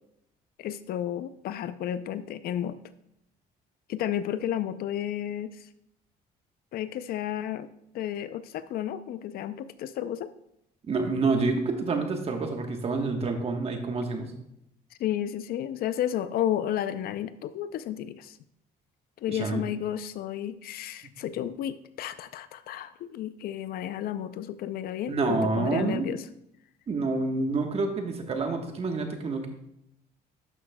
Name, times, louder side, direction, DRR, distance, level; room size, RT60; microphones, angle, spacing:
voice 1, 0.6-2.8 3.9-5.7 6.7-7.7 7.9-10.3 15.0-18.4 19.2-26.3, left 11 dB, 65° left, 13 dB, 0.4 m, -32 dB
voice 2, 10.9-14.3 19.3-19.6 25.1-26.0 26.9-29.5, right 3 dB, 35° right, 4 dB, 1.2 m, -28 dB
11.5 x 6.3 x 2.2 m, 0.78 s
cardioid pair, 110°, 17 cm